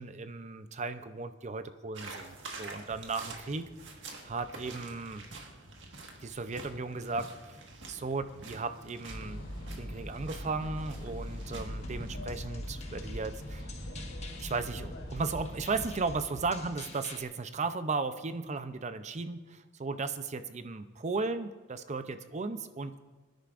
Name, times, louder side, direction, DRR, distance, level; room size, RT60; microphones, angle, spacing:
voice 1, 0.0-3.7 4.2-5.2 6.2-7.6 7.9-9.5 9.8-13.7 14.4-23.0, right 4 dB, 40° right, 10 dB, 0.5 m, -36 dB
sound 1, 1.9-12.2, right 2 dB, 75° right, 1.6 m, -47 dB
sound 2, 9.1-15.9, equal, 80° left, 3.0 m, -42 dB
sound 3, 11.6-17.2, left 1 dB, 35° left, 1.2 m, -46 dB
22.5 x 10.5 x 2.5 m, 1.2 s
head